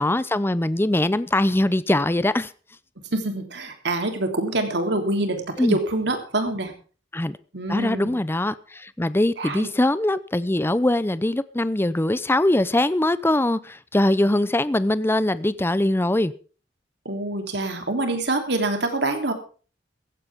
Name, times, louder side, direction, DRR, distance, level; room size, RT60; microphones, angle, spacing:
voice 1, 0.0-2.5 5.6-5.8 7.1-7.4 7.7-16.3, left 1 dB, 15° left, 0.6 m, -22 dB
voice 2, 3.1-6.7 7.5-8.2 9.4-9.7 17.0-19.3, right 2 dB, 65° right, 3.3 m, -26 dB
16.0 x 15.5 x 3.6 m
head